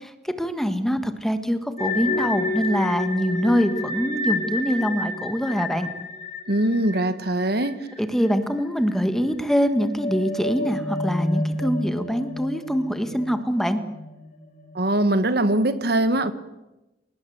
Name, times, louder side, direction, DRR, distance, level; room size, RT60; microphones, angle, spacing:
voice 1, 0.0-5.9 8.0-13.8, equal, ahead, 9 dB, 1.6 m, -24 dB
sound 1, 1.8-8.6 8.9-9.0 9.6-14.9, left 2 dB, 45° left, 3.9 m, -30 dB
voice 2, 6.5-7.7 14.7-16.3, right 1 dB, 60° right, 12 dB, 1.6 m, -22 dB
28.5 x 19.0 x 7.9 m, 0.98 s
head